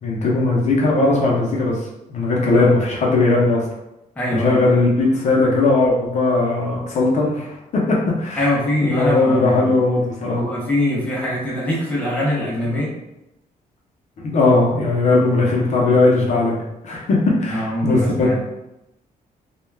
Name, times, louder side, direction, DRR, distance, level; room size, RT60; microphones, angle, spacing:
voice 1, 0.0-1.8 2.1-3.6 4.3-8.4 8.8-10.4 14.2-18.4, left 2 dB, 50° left, -3 dB, 0.6 m, -18 dB
voice 2, 4.2-4.7 8.4-9.7 10.2-12.9 17.5-18.4, left 1 dB, 10° left, -6 dB, 0.6 m, -22 dB
2.3 x 2.2 x 3.2 m, 0.89 s
cardioid pair, 165°, 15 cm